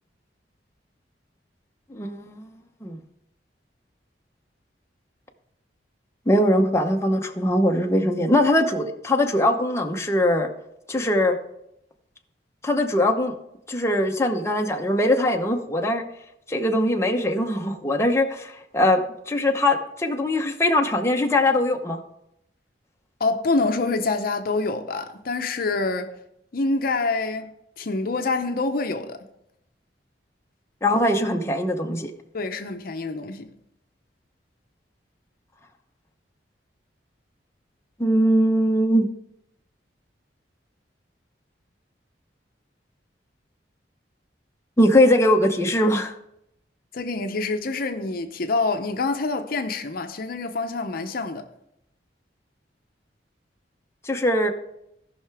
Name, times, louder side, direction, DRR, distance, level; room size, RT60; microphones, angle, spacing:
voice 1, 1.9-2.5 2.8-3.0 6.3-10.5 10.9-11.4 12.6-13.3 13.7-16.0 16.5-22.0 30.8-32.1 38.0-39.1 44.8-46.1 54.0-54.5, left 1 dB, 15° left, 0.8 m, -21 dB
voice 2, 23.2-26.1 26.5-27.5 27.8-29.3 32.3-33.5 46.9-51.5, left 3 dB, 55° left, 0.6 m, -26 dB
17.0 x 5.7 x 3.4 m
head